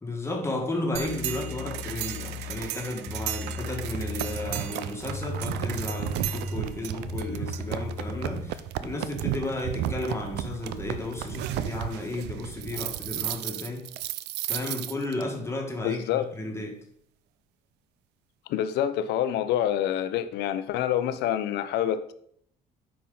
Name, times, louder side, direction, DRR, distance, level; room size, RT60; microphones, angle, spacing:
voice 1, 0.0-13.9 14.5-16.8, left 2 dB, 15° left, 1.5 m, -33 dB
sound 1, 0.6-0.7 1.1-8.6, left 3 dB, 40° left, 1.0 m, -37 dB
sound 2, 0.9-15.2, right 12 dB, 80° right, 0.4 m, -34 dB
voice 2, 15.8-16.3 18.5-22.1, left 10 dB, 80° left, 0.6 m, -27 dB
8.6 x 5.4 x 3.9 m
cardioid pair, 110°, 17 cm